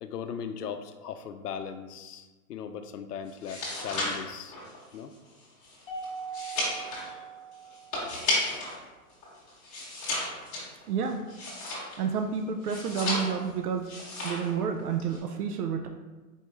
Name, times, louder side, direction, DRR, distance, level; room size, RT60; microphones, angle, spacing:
voice 1, 0.0-4.6 4.9-5.1 6.3-6.6 7.0-7.2, left 7 dB, 80° left, 9 dB, 0.6 m, -38 dB
sound 1, 3.3-8.8 9.1-12.1 12.6-13.5 13.8-14.5 14.8-15.2, left 2 dB, 15° left, 1.0 m, -33 dB
Mallet percussion, 5.9-8.3, right 5 dB, 50° left, 1.0 m, -40 dB
voice 2, 10.9-11.2 12.0-13.9 14.2-15.9, right 6 dB, 70° right, 4 dB, 0.6 m, -30 dB
4.5 x 3.0 x 3.4 m, 1.2 s
hypercardioid pair, 155°, 46 cm